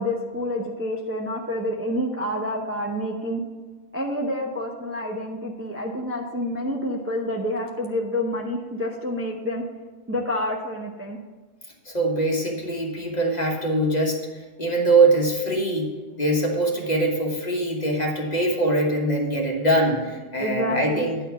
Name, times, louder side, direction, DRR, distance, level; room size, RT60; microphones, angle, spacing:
voice 1, 0.0-3.4 3.9-9.6 10.1-11.2 20.4-21.0, left 1 dB, 15° right, -1 dB, 0.7 m, -28 dB
voice 2, 11.8-14.2 14.6-15.9 16.2-21.2, right 2 dB, 35° left, 0 dB, 1.4 m, -22 dB
9.7 x 4.3 x 6.9 m, 1.3 s
omnidirectional pair, 1.3 m